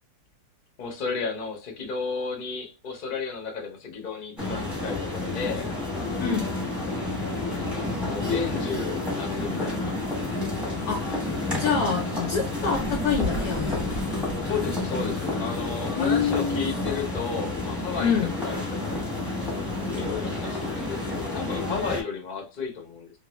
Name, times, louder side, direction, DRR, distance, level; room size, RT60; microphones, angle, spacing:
voice 1, 0.8-5.7 8.0-9.9 14.4-18.1 18.4-19.0 19.9-23.1, left 5 dB, 40° left, 0.7 m, -33 dB
sound 1, 4.4-22.0, left 2 dB, ahead, 1.0 m, -30 dB
voice 2, 10.8-11.3 11.6-14.0 15.9-16.7 18.0-18.3, left 6 dB, 70° left, 0.9 m, -26 dB
3.0 x 2.6 x 3.0 m
omnidirectional pair, 2.0 m